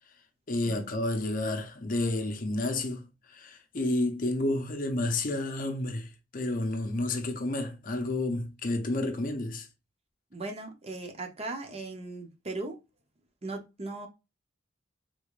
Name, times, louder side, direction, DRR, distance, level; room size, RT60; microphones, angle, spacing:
voice 1, 0.5-9.7, left 2 dB, 45° left, 0.6 m, -30 dB
voice 2, 10.3-12.8 13.4-14.1, right 2 dB, 30° right, 0.7 m, -38 dB
3.6 x 3.4 x 2.4 m
head